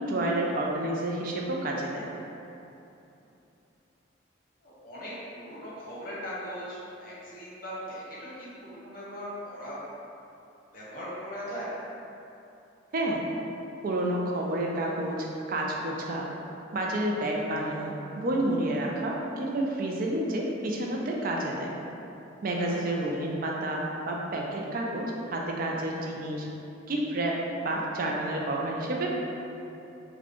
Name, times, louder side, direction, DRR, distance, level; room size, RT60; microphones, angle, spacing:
voice 1, 0.0-2.1 12.9-13.2 13.8-16.3 16.7-21.7 22.4-26.5 26.9-27.4 27.6-29.1, right 1 dB, 50° right, -1 dB, 0.4 m, -30 dB
voice 2, 4.6-9.8 10.7-11.7 22.6-22.7, equal, 50° left, -8 dB, 1.0 m, -39 dB
4.1 x 2.2 x 2.9 m, 2.9 s
head